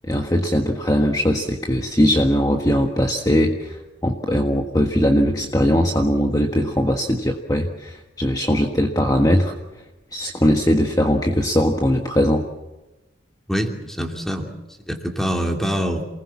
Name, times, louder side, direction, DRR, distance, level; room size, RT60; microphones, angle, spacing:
voice 1, 0.1-9.8 10.1-12.4, equal, 20° left, 2 dB, 1.5 m, -20 dB
voice 2, 13.5-14.5 14.9-16.1, equal, ahead, 2 dB, 2.7 m, -24 dB
28.5 x 20.0 x 7.3 m, 1.0 s
head